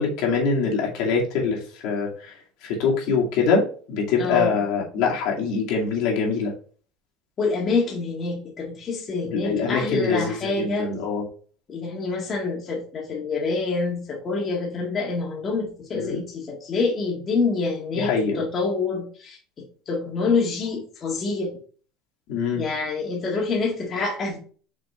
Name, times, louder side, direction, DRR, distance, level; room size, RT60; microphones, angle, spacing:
voice 1, 0.0-2.3 2.6-6.5 9.3-11.2 15.9-16.2 18.0-18.4 22.3-22.6, left 5 dB, 65° left, -2 dB, 2.3 m, -24 dB
voice 2, 4.2-4.6 7.4-10.9 11.7-19.4 19.9-21.5 22.5-24.4, left 4 dB, 30° left, -2 dB, 1.9 m, -26 dB
6.1 x 4.4 x 4.3 m, 0.42 s
cardioid pair, 160°, 0 cm